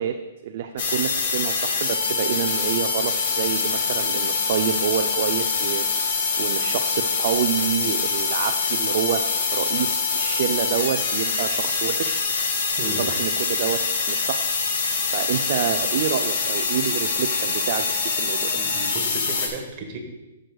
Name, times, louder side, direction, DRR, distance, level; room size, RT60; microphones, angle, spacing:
voice 1, 0.0-6.0 6.4-12.3 13.0-14.5 14.7-14.8 15.1-18.6, right 9 dB, 50° right, 6 dB, 0.4 m, -28 dB
sound 1, 0.8-19.5, left 4 dB, 55° left, 1.4 m, -24 dB
voice 2, 18.5-20.0, right 3 dB, 30° right, 2 dB, 1.3 m, -34 dB
12.5 x 6.3 x 2.3 m, 1.0 s
hypercardioid pair, 155°, 0 cm